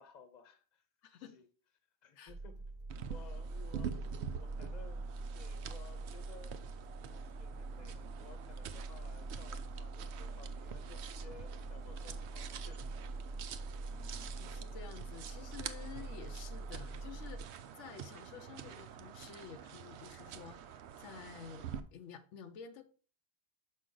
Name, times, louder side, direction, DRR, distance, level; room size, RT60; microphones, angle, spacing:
voice 1, 0.0-0.8 1.2-1.5 2.0-2.6 2.9-12.9 13.6-14.1, left 5 dB, 40° left, 0.9 m, -58 dB
voice 2, 1.0-1.4 2.2-2.3 13.9-22.8, left 7 dB, 85° left, 1.0 m, -51 dB
sound 1, 2.3-17.5, right 2 dB, 40° right, 1.0 m, -44 dB
sound 2, 2.9-21.8, right 9 dB, 70° right, 0.8 m, -47 dB
6.2 x 5.4 x 3.8 m
omnidirectional pair, 1.2 m